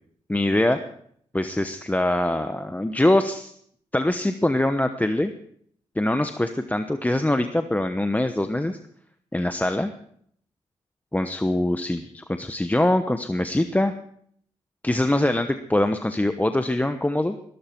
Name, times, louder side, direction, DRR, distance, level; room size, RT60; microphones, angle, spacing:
voice 1, 0.3-0.8 1.3-3.5 3.9-5.3 6.0-8.8 9.3-9.9 11.1-13.9 14.8-17.4, left 1 dB, 10° left, 8 dB, 1.0 m, -23 dB
20.5 x 12.5 x 4.5 m, 0.66 s
cardioid pair, 55°, 13 cm